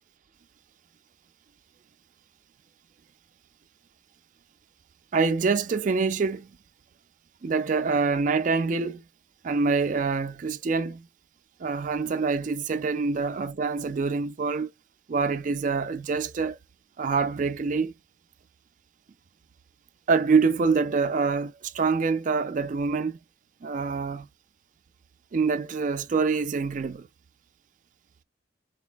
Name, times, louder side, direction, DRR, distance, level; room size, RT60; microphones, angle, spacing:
voice 1, 5.1-6.5 7.4-9.0 9.4-11.1 11.6-14.7 15.1-16.6 17.0-17.9 20.1-23.2 23.6-24.3 25.3-27.1, right 4 dB, 40° right, 0.3 m, -25 dB
4.0 x 2.1 x 2.2 m
head